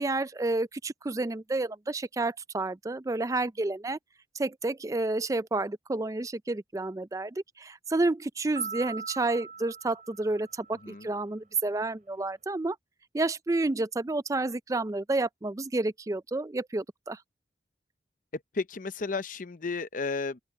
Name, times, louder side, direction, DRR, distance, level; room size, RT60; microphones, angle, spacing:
voice 1, 0.0-4.0 4.4-12.8 13.1-17.2, right 2 dB, 20° right, 0.4 m, -30 dB
sound 1, 8.6-11.1, right 5 dB, 45° right, 3.4 m, -41 dB
voice 2, 18.3-20.4, left 4 dB, 45° left, 0.7 m, -33 dB
head